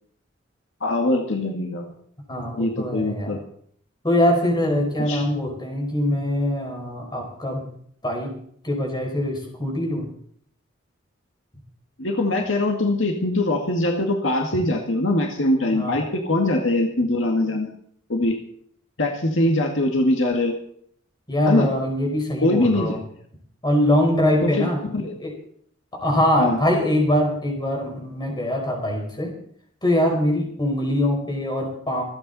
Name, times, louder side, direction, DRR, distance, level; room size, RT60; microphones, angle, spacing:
voice 1, 0.8-1.8 2.6-3.4 5.0-5.2 12.0-17.7 18.1-18.4 19.0-20.5 21.5-21.7 22.4-23.0 24.4-25.1 26.4-26.6, left 1 dB, 70° left, 2 dB, 2.0 m, -22 dB
voice 2, 2.3-3.4 4.0-7.7 8.0-8.3 8.6-10.1 15.7-16.0 21.3-23.0 23.6-24.8 25.2-25.3 26.0-29.3 29.8-32.0, left 1 dB, 20° left, 1 dB, 5.1 m, -23 dB
26.0 x 9.2 x 4.2 m, 0.63 s
head